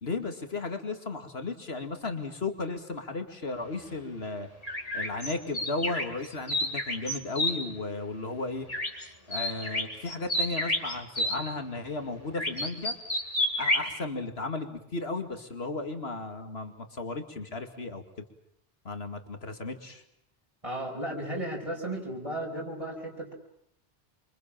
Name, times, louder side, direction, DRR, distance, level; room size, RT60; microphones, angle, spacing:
voice 1, 0.0-4.5 4.9-8.7 9.3-12.9 13.6-18.0 18.8-20.0, left 3 dB, 80° left, 6 dB, 2.7 m, -35 dB
sound 1, 4.6-7.5 8.7-9.0 9.3-11.4 12.3-13.9, left 1 dB, 35° left, 3.8 m, -29 dB
voice 2, 20.6-23.3, right 1 dB, 30° right, -2 dB, 5.4 m, -34 dB
28.5 x 25.0 x 7.5 m, 0.72 s
omnidirectional pair, 1.0 m